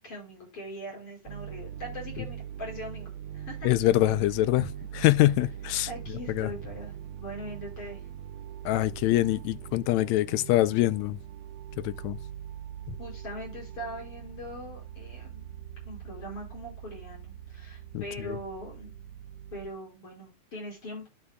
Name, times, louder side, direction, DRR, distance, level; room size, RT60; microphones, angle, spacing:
voice 1, 0.0-3.7 4.6-4.7 5.9-8.0 13.0-15.6 15.8-18.9 19.5-21.1, equal, 45° left, 6.0 m, -41 dB
sound 1, 1.3-19.7, right 10 dB, 75° right, 1.7 m, -42 dB
voice 2, 3.6-4.6 5.0-5.9 6.3-6.5 8.7-11.2 11.8-12.2 17.9-18.4, left 16 dB, 80° left, 1.8 m, -24 dB
11.0 x 6.0 x 2.3 m
omnidirectional pair, 3.4 m